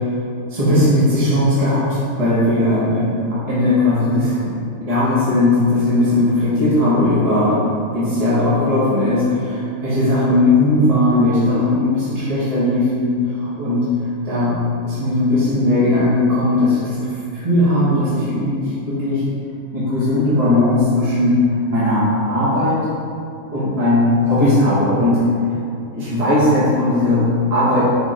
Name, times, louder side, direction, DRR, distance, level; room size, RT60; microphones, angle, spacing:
voice 1, 0.5-4.5 4.8-7.6 7.9-13.9 14.2-14.6 14.8-19.2 19.7-22.8 23.5-25.2 25.9-27.8, left 1 dB, 25° right, -11 dB, 1.5 m, -17 dB
5.1 x 3.8 x 5.7 m, 2.6 s
omnidirectional pair, 1.5 m